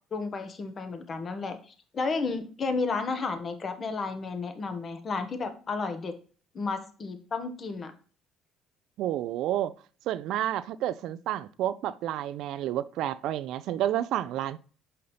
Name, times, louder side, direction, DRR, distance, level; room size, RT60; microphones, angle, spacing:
voice 1, 0.1-6.1 6.5-7.9, left 4 dB, 40° left, 1.2 m, -32 dB
voice 2, 9.0-9.7 10.1-14.6, right 12 dB, 70° right, 0.4 m, -30 dB
5.6 x 5.5 x 3.2 m
hypercardioid pair, 65°, 0 cm